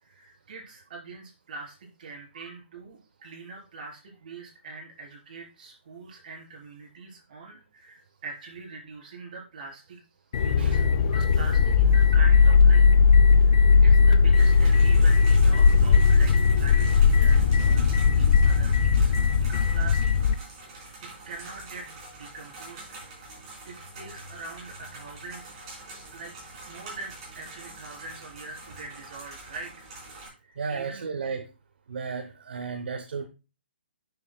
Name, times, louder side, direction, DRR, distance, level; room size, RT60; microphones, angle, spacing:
voice 1, 0.0-10.0 10.4-12.8 13.4-19.1 19.4-20.2 20.7-20.9 21.3-22.8 23.7-25.5 26.1-26.3 26.7-30.0 30.4-31.1, right 3 dB, 45° right, -1 dB, 3.9 m, -43 dB
sound 1, 10.3-20.4, left 5 dB, 40° left, 0.5 m, -18 dB
sound 2, 14.3-30.3, right 2 dB, 25° right, 4.2 m, -45 dB
voice 2, 30.6-31.5 31.9-33.3, right 5 dB, 60° right, 7 dB, 0.9 m, -34 dB
9.5 x 7.0 x 2.2 m, 0.30 s
hypercardioid pair, 170°, 6 cm